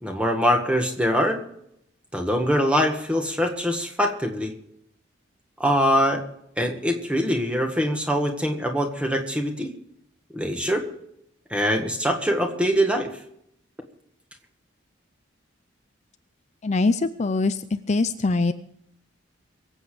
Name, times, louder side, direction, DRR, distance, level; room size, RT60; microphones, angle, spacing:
voice 1, 0.0-1.4 2.1-4.5 5.6-6.2 6.6-9.7 10.3-10.9 11.5-13.1, equal, 5° right, 3 dB, 1.7 m, -23 dB
voice 2, 16.6-17.5 17.9-18.5, left 3 dB, 35° left, 11 dB, 0.5 m, -22 dB
23.5 x 8.1 x 5.0 m, 0.74 s
head